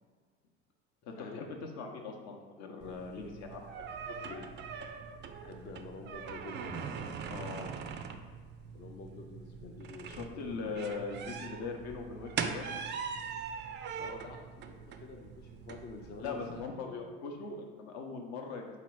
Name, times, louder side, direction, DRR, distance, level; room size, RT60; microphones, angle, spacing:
voice 1, 1.0-4.4 7.3-7.7 10.0-12.7 16.2-18.8, left 4 dB, 55° left, 2 dB, 0.8 m, -41 dB
sound 1, 2.8-16.7, right 6 dB, 35° right, 0.4 m, -42 dB
voice 2, 5.4-6.8 8.7-10.7 14.0-17.1, left 3 dB, 30° left, 1 dB, 0.5 m, -48 dB
3.9 x 2.9 x 4.5 m, 1.5 s
hypercardioid pair, 80°, 33 cm